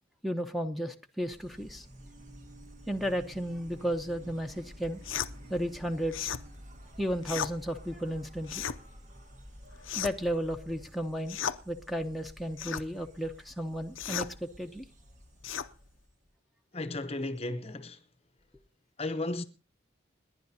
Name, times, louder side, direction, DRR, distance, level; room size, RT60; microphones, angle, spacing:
voice 1, 0.2-1.9 2.9-5.0 5.5-6.3 7.0-8.6 9.9-14.8, equal, ahead, 0.8 m, -34 dB
Insect, 1.2-16.3, equal, 40° right, 1.6 m, -51 dB
sound 1, 2.0-6.8, right 5 dB, 80° right, 4.3 m, -59 dB
sound 2, 5.0-5.3 6.1-6.4 7.2-7.5 8.4-8.8 9.8-10.3 11.3-11.6 12.6-12.9 14.0-14.3 15.4-15.7, left 8 dB, 75° left, 0.6 m, -34 dB
voice 2, 16.7-18.0 19.0-19.4, left 2 dB, 30° left, 0.8 m, -34 dB
29.0 x 10.5 x 2.8 m
head